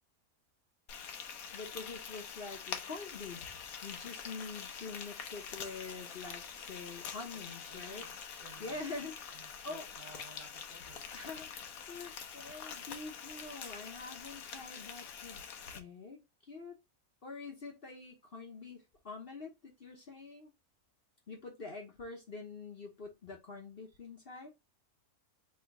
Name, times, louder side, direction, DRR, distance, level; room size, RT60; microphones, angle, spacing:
Frying (food), 0.9-15.8, left 7 dB, 75° left, 1.2 m, -45 dB
voice 1, 1.5-3.5 3.8-8.1 8.6-9.9 11.1-15.5 15.7-16.8 17.2-20.5 21.3-24.5, left 3 dB, 45° left, 1.0 m, -46 dB
voice 2, 7.5-11.1, right 3 dB, 35° right, 1.1 m, -57 dB
3.5 x 3.1 x 4.5 m
omnidirectional pair, 1.5 m